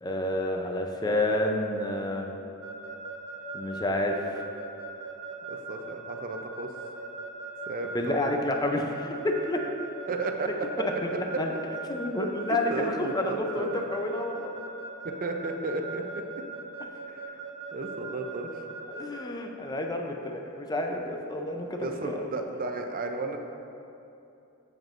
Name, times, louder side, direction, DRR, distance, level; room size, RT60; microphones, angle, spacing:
voice 1, 0.0-2.3 3.5-4.4 7.9-9.6 10.4-11.5 11.9-14.6 18.9-22.4, left 1 dB, 20° left, 3 dB, 0.5 m, -30 dB
Keyboard (musical) / Alarm, 2.6-19.2, right 4 dB, 65° right, 0.8 m, -39 dB
voice 2, 5.5-6.7 7.7-8.3 10.1-10.5 12.7-13.8 15.0-16.2 17.1-17.3 17.7-18.6 21.8-23.4, right 3 dB, 40° right, 4 dB, 0.5 m, -34 dB
7.8 x 7.3 x 2.5 m, 2.8 s
head